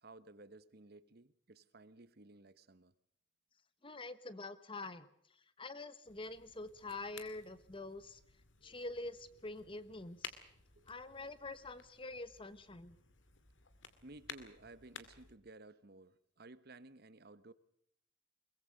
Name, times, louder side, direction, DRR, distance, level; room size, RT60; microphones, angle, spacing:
voice 1, 0.0-2.9 10.7-10.9 14.0-17.5, right 2 dB, 55° right, 14 dB, 1.1 m, -56 dB
voice 2, 3.8-5.1 5.6-8.2 8.6-10.3 10.9-13.0, left 2 dB, 25° left, 14 dB, 1.1 m, -46 dB
sound 1, 6.0-15.4, left 6 dB, 70° left, 2.3 m, -55 dB
22.5 x 21.5 x 6.4 m, 0.71 s
head